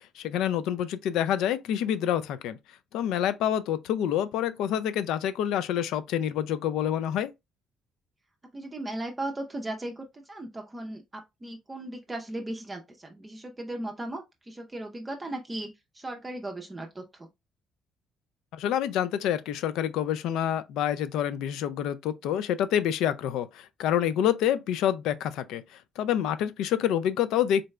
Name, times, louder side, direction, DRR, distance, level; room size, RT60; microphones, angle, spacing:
voice 1, 0.2-2.6 2.9-7.3 18.5-25.6 26.0-27.6, left 10 dB, 85° left, 0.4 m, -27 dB
voice 2, 8.5-15.7 15.9-17.3, right 1 dB, 20° right, 0.5 m, -37 dB
3.8 x 2.2 x 3.1 m
cardioid pair, 110°, 0 cm